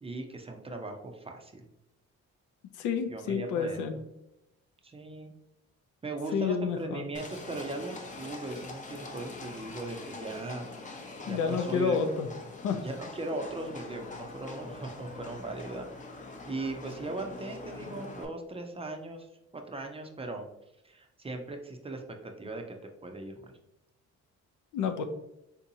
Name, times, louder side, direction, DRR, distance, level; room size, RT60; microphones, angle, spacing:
voice 1, 0.0-1.6 3.1-3.8 4.8-5.3 6.0-12.0 12.8-15.9 16.5-20.5 20.8-22.8 23.0-23.5, right 2 dB, 20° right, 3 dB, 0.5 m, -38 dB
voice 2, 2.8-3.9 6.3-7.1 11.3-12.3 12.6-12.8 24.7-25.0, left 6 dB, 80° left, 7 dB, 0.5 m, -29 dB
Livestock farm animals working animals, 7.1-18.2, left 3 dB, 25° left, 0.6 m, -44 dB
3.6 x 2.7 x 2.7 m, 0.87 s
cardioid pair, 90°, 30 cm